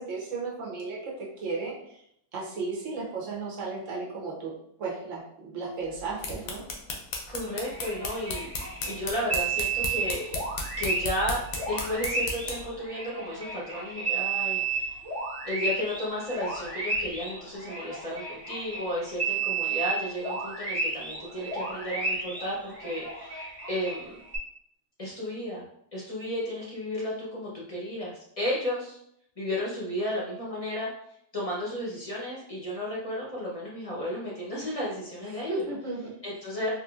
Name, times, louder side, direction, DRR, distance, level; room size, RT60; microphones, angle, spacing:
voice 1, 0.0-2.0 2.3-6.6 35.3-36.2, right 3 dB, 60° right, -4 dB, 1.1 m, -35 dB
sound 1, 5.9-12.7, left 3 dB, 75° left, 1.0 m, -36 dB
voice 2, 7.3-10.4 10.8-11.4 11.7-14.9 15.4-24.2 25.0-25.7 25.9-29.0 29.4-30.9 31.3-35.6 36.2-36.7, left 1 dB, 35° left, -6 dB, 0.6 m, -33 dB
sound 2, 7.4-8.9 9.3-18.8 19.2-24.0 24.3-24.4, right 4 dB, 20° right, 1.0 m, -32 dB
3.5 x 2.6 x 2.4 m, 0.73 s
omnidirectional pair, 1.6 m